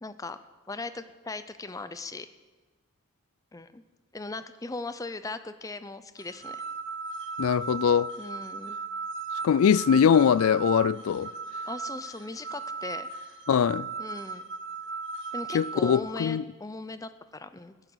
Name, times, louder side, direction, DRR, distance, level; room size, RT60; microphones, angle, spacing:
voice 1, 0.0-0.4 0.7-2.3 3.5-3.8 4.1-6.6 8.2-8.8 11.7-13.1 14.0-14.4 15.3-17.9, left 3 dB, 15° left, 0.5 m, -39 dB
sound 1, 6.2-16.0, right 5 dB, 55° right, 2.1 m, -37 dB
voice 2, 7.4-8.1 9.4-11.3 13.5-13.9 15.5-16.4, left 7 dB, 70° left, 0.3 m, -22 dB
11.0 x 10.5 x 8.0 m
head